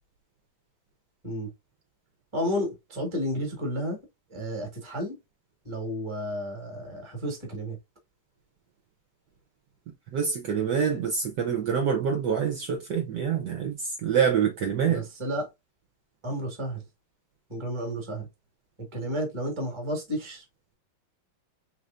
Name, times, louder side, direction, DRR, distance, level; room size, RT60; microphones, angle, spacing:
voice 1, 2.3-4.0 4.3-5.2 5.6-7.8 14.9-15.5 16.2-16.8 17.5-18.3 18.8-20.4, equal, 15° right, 1.1 m, -32 dB
voice 2, 10.1-15.0, right 7 dB, 65° right, 1.2 m, -26 dB
4.1 x 3.2 x 2.4 m
omnidirectional pair, 2.3 m